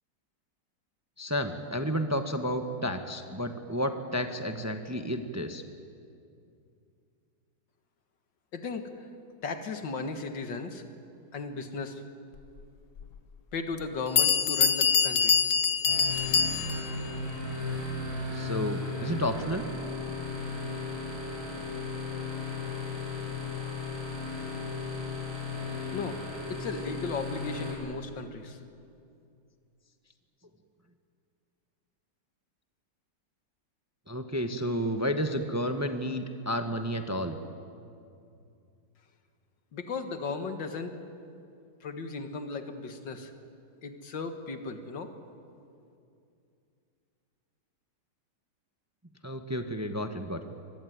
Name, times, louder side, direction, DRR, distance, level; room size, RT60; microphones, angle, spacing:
voice 1, 1.2-5.6 18.3-19.6 34.1-37.4 49.2-50.4, equal, 10° right, 7 dB, 1.0 m, -31 dB
voice 2, 8.5-8.9 9.4-10.8 11.3-12.0 13.5-15.3 25.9-26.2 26.5-28.6 39.7-41.0 41.8-43.3 43.8-45.1, left 4 dB, 85° left, 7 dB, 2.4 m, -36 dB
Bell, 13.0-13.1 13.8-13.9 14.2-17.0, left 6 dB, 50° left, 1.2 m, -24 dB
sound 1, 15.8-27.7, left 3 dB, 30° right, 6.5 m, -35 dB
25.0 x 20.5 x 9.4 m, 2.5 s
omnidirectional pair, 1.9 m